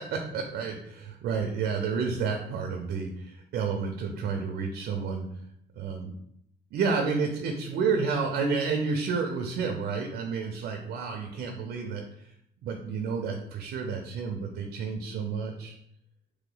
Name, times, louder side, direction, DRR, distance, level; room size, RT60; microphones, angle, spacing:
voice 1, 0.1-5.3 5.8-6.1 6.7-12.0 12.6-15.8, right 5 dB, 70° right, 3 dB, 0.6 m, -30 dB
3.1 x 2.9 x 3.9 m, 0.73 s
cardioid pair, 110°, 17 cm